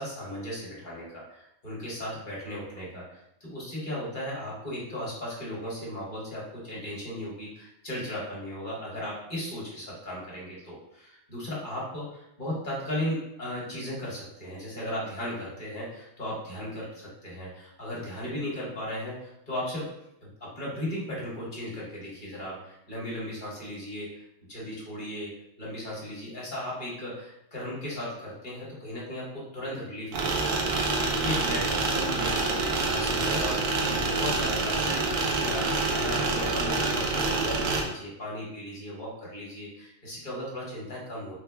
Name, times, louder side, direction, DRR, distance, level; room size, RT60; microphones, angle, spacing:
voice 1, 0.0-19.9 20.2-24.2 24.5-25.3 25.6-30.6 31.1-41.4, left 1 dB, 40° left, -6 dB, 1.1 m, -36 dB
sound 1, 30.1-37.8, right 3 dB, 70° right, 0.9 m, -27 dB
3.5 x 2.1 x 3.3 m, 0.82 s
omnidirectional pair, 1.4 m